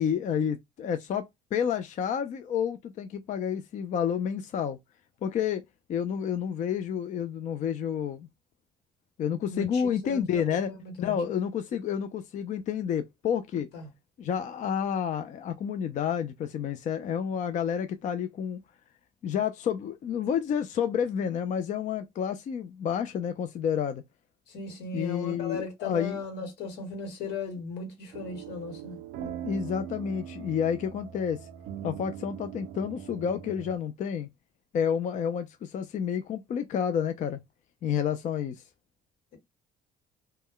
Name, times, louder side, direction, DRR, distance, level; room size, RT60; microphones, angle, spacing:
voice 1, 0.0-4.8 5.2-5.6 5.9-8.3 9.2-10.7 11.0-13.7 14.2-18.6 19.2-24.0 24.9-26.2 29.2-31.5 31.8-34.3 34.7-37.4 37.8-38.6, left 8 dB, 45° left, 0.4 m, -30 dB
voice 2, 9.5-10.4 10.7-11.1 13.7-13.9 24.5-29.0, left 4 dB, 90° left, 1.3 m, -37 dB
sound 1, 28.1-33.8, right 10 dB, 80° right, 0.4 m, -41 dB
2.2 x 2.1 x 3.5 m
cardioid pair, 110°, 17 cm